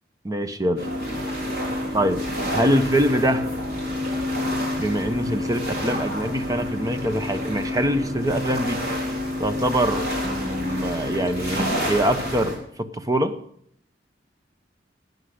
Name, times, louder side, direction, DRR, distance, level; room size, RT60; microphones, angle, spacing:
voice 1, 0.2-0.9 1.9-2.2 2.5-3.5 4.8-8.8 9.4-13.4, right 1 dB, 20° right, 9 dB, 0.8 m, -24 dB
sound 1, 0.8-12.6, left 1 dB, 55° right, 3.9 m, -28 dB
13.0 x 9.1 x 6.5 m, 0.71 s
head